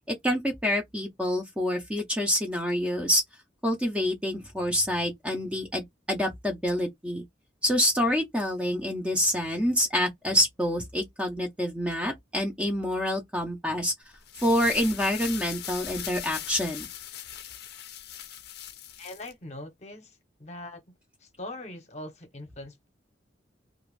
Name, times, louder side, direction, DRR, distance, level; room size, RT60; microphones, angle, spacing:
voice 1, 0.1-3.2 3.6-7.2 7.6-13.9 14.4-16.9, equal, 5° right, 0.5 m, -27 dB
sound 1, 14.1-19.3, left 10 dB, 55° left, 0.5 m, -39 dB
voice 2, 19.0-20.8 21.2-22.9, left 1 dB, 35° left, 0.8 m, -42 dB
2.5 x 2.3 x 3.1 m
head